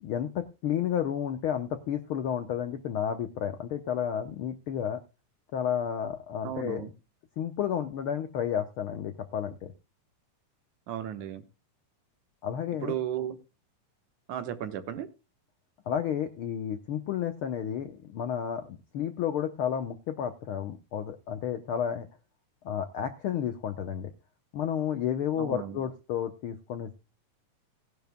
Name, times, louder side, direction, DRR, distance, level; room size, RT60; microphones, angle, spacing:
voice 1, 0.0-5.0 5.5-6.9 7.4-9.7 12.4-12.9 15.9-22.1 22.6-24.1 24.5-26.9, left 9 dB, 80° left, 8 dB, 1.2 m, -31 dB
voice 2, 6.4-6.9 10.9-11.4 12.8-13.4 14.3-15.1 25.4-25.8, right 10 dB, 75° right, 9 dB, 2.6 m, -34 dB
18.0 x 10.5 x 2.2 m, 0.27 s
omnidirectional pair, 3.5 m